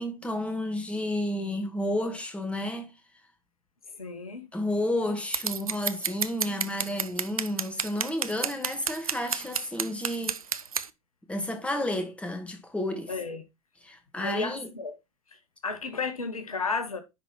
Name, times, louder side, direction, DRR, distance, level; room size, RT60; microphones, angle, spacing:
voice 1, 0.0-2.9 4.5-10.4 11.3-13.1 13.8-14.7, left 1 dB, 5° left, 1.8 m, -31 dB
voice 2, 4.0-4.4 13.1-13.4 14.1-14.9 15.6-17.0, left 4 dB, 80° left, 1.2 m, -32 dB
Scissors, 5.3-10.9, right 6 dB, 80° right, 0.6 m, -30 dB
10.5 x 4.1 x 4.2 m
figure-of-eight pair, 85°, 18 cm